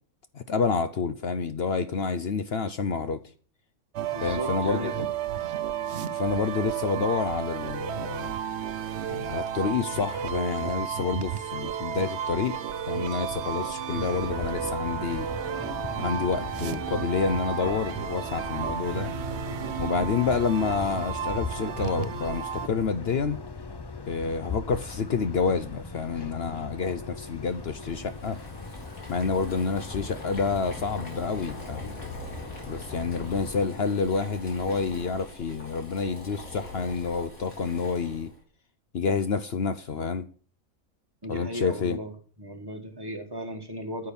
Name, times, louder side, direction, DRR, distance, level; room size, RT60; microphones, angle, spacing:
voice 1, 0.3-3.2 4.2-5.1 6.1-8.3 9.1-12.6 12.9-15.3 16.0-19.1 19.8-23.4 24.1-28.4 29.1-31.9 32.7-38.3 38.9-40.3 41.3-42.0, left 5 dB, 55° left, 0.9 m, -28 dB
sound 1, 3.9-22.7, right 8 dB, 60° right, 0.9 m, -33 dB
voice 2, 4.1-5.1 41.2-42.1 42.4-44.1, equal, 15° right, 1.6 m, -36 dB
sound 2, 14.0-33.7, left 4 dB, 30° left, 0.5 m, -39 dB
Boiling, 27.1-38.4, left 2 dB, 90° left, 3.9 m, -43 dB
9.7 x 8.9 x 7.0 m
omnidirectional pair, 1.4 m